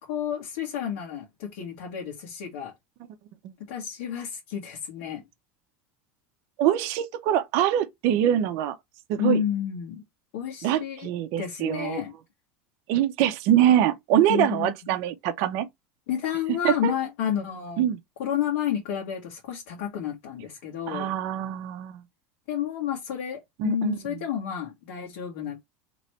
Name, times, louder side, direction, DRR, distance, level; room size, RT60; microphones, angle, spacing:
voice 1, 0.0-2.7 3.7-5.2 9.2-10.0 10.3-11.1 11.4-12.1 14.3-14.7 16.1-17.9 18.2-21.1 22.5-25.6, left 9 dB, 75° left, 1.3 m, -30 dB
voice 2, 6.6-8.7 9.1-9.4 10.6-12.0 12.9-15.7 16.6-16.9 17.8-18.0 20.9-22.0 23.6-24.0, right 11 dB, 50° right, 0.7 m, -24 dB
3.1 x 3.0 x 4.3 m
supercardioid pair, 170°, 6 cm